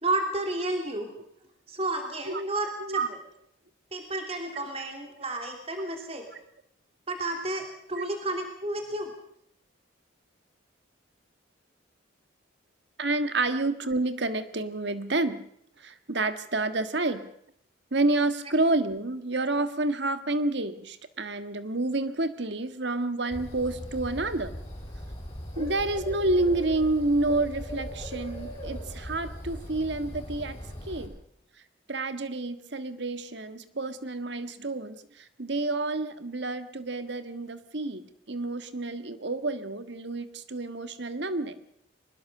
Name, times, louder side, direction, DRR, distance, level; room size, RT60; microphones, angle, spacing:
voice 1, 0.0-1.1 1.7-3.2 3.9-6.3 7.1-9.1, right 2 dB, 30° right, 4 dB, 3.0 m, -31 dB
voice 2, 13.0-15.4 15.8-17.2 17.9-24.5 25.6-30.6 30.9-31.2 31.9-41.6, right 2 dB, 60° right, 11 dB, 1.6 m, -29 dB
Bird, 23.3-31.1, equal, 25° left, 7.8 m, -39 dB
23.5 x 20.5 x 6.6 m, 0.71 s
head